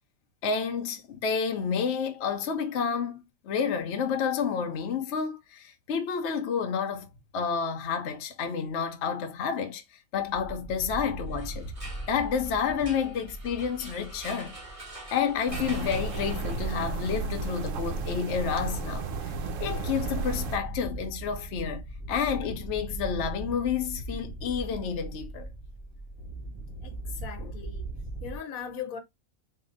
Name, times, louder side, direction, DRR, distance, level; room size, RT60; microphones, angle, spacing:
voice 1, 0.4-7.1 7.3-9.8 10.1-11.7 12.1-14.5 15.1-19.3 19.6-25.5 27.4-27.5, left 6 dB, 60° left, 0.9 m, -30 dB
sound 1, 10.1-28.4, right 2 dB, 20° left, 1.0 m, -40 dB
sound 2, 11.3-17.0, right 1 dB, 25° right, 1.7 m, -46 dB
sound 3, 15.5-20.6, right 3 dB, 70° right, 0.9 m, -33 dB
voice 2, 26.8-27.9 28.2-29.0, left 7 dB, 80° left, 1.2 m, -39 dB
3.6 x 2.4 x 3.8 m
omnidirectional pair, 1.5 m